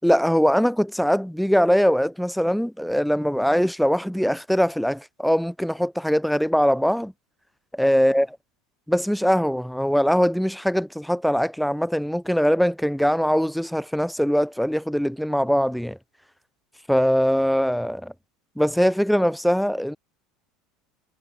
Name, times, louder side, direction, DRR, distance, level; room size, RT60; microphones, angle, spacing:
voice 1, 0.0-7.1 7.7-8.3 8.9-16.0 16.9-18.1 18.6-20.0, equal, ahead, 5.7 m, -21 dB
hypercardioid pair, 85°, 0 cm